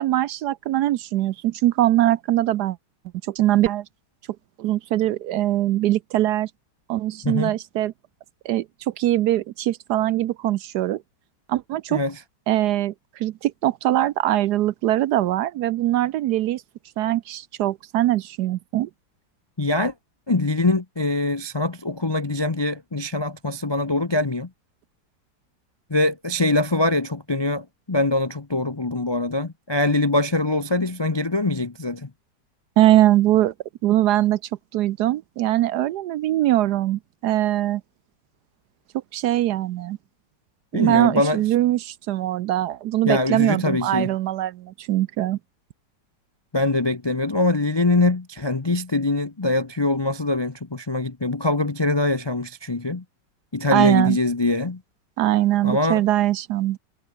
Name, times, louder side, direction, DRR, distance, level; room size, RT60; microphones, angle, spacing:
voice 1, 0.0-2.8 3.2-3.8 4.6-6.5 6.9-7.9 8.4-11.0 11.5-12.0 12.5-16.6 17.0-18.9 32.8-33.5 33.8-34.4 34.7-37.8 39.1-40.0 40.7-45.4 53.7-54.2 55.2-56.8, right 14 dB, 70° right, 1.1 m, -22 dB
voice 2, 7.2-7.5 11.9-12.2 19.6-19.9 20.3-24.5 25.9-32.1 40.7-41.4 43.1-44.1 46.5-53.0 53.5-54.8 55.6-56.0, left 2 dB, 35° left, 0.4 m, -23 dB
omnidirectional pair, 2.0 m